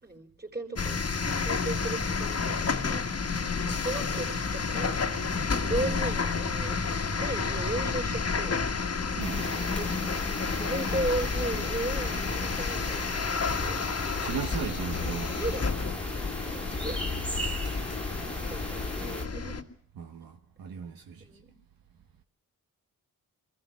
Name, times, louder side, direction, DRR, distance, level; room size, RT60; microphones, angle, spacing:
voice 1, 0.0-1.0 1.4-3.0 3.6-5.0 5.5-8.6 9.4-10.0 10.6-13.8 15.0-15.7 16.4-17.1 17.9-18.0 18.2-19.6 21.2-21.5, right 2 dB, 25° right, 4.1 m, -36 dB
sound 1, 0.7-19.6, left 4 dB, 45° left, 1.6 m, -30 dB
sound 2, 9.2-19.3, equal, 5° left, 2.1 m, -39 dB
voice 2, 14.2-15.3 20.0-21.3, right 7 dB, 80° right, 1.3 m, -36 dB
23.5 x 14.5 x 8.5 m
cardioid pair, 65°, 35 cm